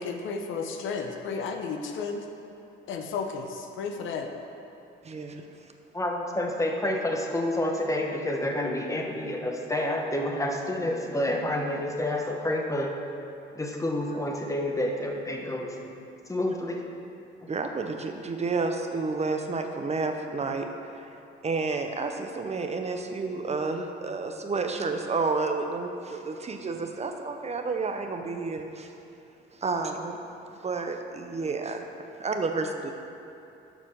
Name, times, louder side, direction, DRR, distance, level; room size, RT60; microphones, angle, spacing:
voice 1, 0.0-2.3 2.9-4.3, left 5 dB, 80° left, 4 dB, 0.8 m, -33 dB
voice 2, 5.0-5.4 17.5-20.7 20.9-21.1 21.4-28.9 29.5-30.2 30.6-31.8 32.2-32.9, right 4 dB, 35° right, 5 dB, 0.7 m, -30 dB
voice 3, 5.9-12.9 13.5-15.9 16.3-16.8, left 1 dB, 15° left, 1 dB, 1.1 m, -29 dB
7.0 x 5.6 x 6.1 m, 2.8 s
cardioid pair, 90°, 20 cm